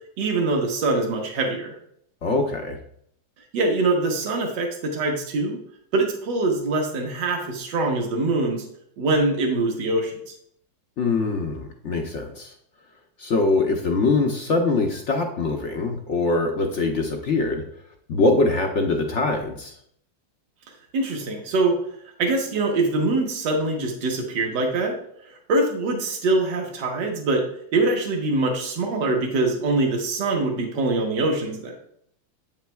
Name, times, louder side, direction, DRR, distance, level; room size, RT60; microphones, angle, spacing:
voice 1, 0.2-1.8 3.5-5.6 5.9-8.7 9.0-10.3 20.9-21.8 22.2-25.0 25.3-27.5 27.7-31.7, right 2 dB, 65° right, 1 dB, 1.8 m, -23 dB
voice 2, 2.2-2.8 11.0-12.5 13.2-17.6 18.1-19.7, left 3 dB, 70° left, 3 dB, 0.6 m, -23 dB
8.1 x 7.3 x 2.3 m, 0.68 s
omnidirectional pair, 2.1 m